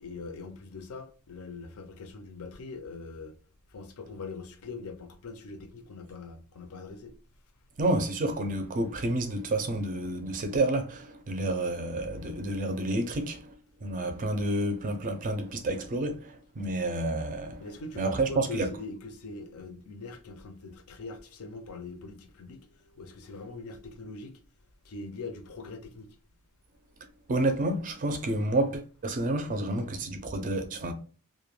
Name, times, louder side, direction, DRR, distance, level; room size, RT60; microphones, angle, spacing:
voice 1, 0.0-3.3 3.7-7.1 17.6-24.3 24.8-26.1, left 3 dB, 75° left, 0.5 m, -42 dB
voice 2, 7.8-13.5 13.8-17.7 18.0-18.7 27.3-30.9, right 2 dB, 35° right, 0.4 m, -29 dB
2.1 x 2.1 x 3.1 m
head